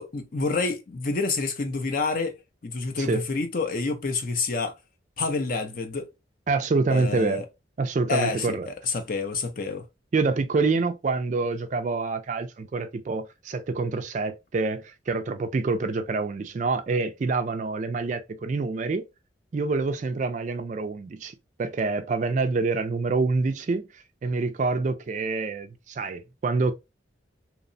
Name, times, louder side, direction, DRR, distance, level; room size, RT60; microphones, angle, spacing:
voice 1, 0.0-2.4 2.6-4.8 5.2-6.1 6.9-7.5 8.1-9.9, left 4 dB, 45° left, 0.5 m, -28 dB
voice 2, 6.5-7.4 7.8-8.7 10.1-19.1 19.5-26.7, right 3 dB, 40° right, 0.3 m, -26 dB
2.8 x 2.1 x 2.5 m
head